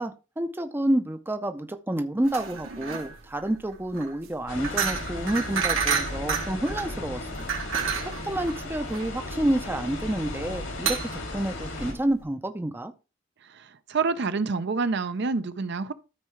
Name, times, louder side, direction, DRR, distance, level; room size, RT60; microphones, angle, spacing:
voice 1, 0.0-7.5 8.0-12.9, right 1 dB, 10° right, 0.5 m, -29 dB
sound 1, 2.2-12.2, right 6 dB, 85° right, 2.0 m, -31 dB
sound 2, 4.5-11.9, left 2 dB, 80° left, 2.4 m, -35 dB
voice 2, 13.9-15.9, right 4 dB, 55° right, 0.6 m, -27 dB
13.0 x 4.6 x 3.2 m
head